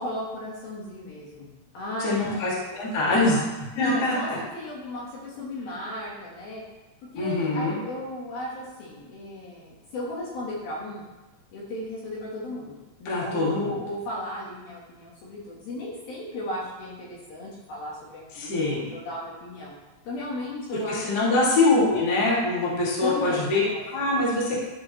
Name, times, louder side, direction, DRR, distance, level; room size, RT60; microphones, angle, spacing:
voice 1, 0.0-2.5 3.0-3.5 3.8-6.6 7.1-11.1 11.5-19.7 20.0-21.3 23.0-23.8, left 1 dB, 65° left, -5 dB, 2.8 m, -35 dB
voice 2, 2.0-3.4 3.7-4.4 7.2-7.7 13.0-13.7 18.4-18.9 20.9-23.6 23.9-24.6, left 2 dB, 30° left, -6 dB, 1.8 m, -24 dB
13.5 x 6.1 x 3.1 m, 1.1 s
omnidirectional pair, 5.4 m